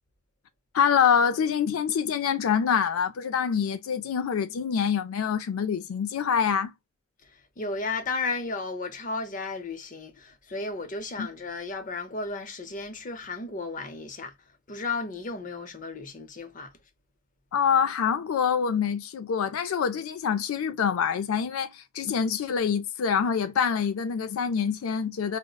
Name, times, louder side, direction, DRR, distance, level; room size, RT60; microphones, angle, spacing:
voice 1, 0.7-6.7 11.2-11.3 17.5-25.4, left 7 dB, 90° left, 0.4 m, -25 dB
voice 2, 7.2-14.3 14.7-16.7, left 3 dB, 40° left, 0.7 m, -34 dB
5.0 x 2.1 x 2.2 m
head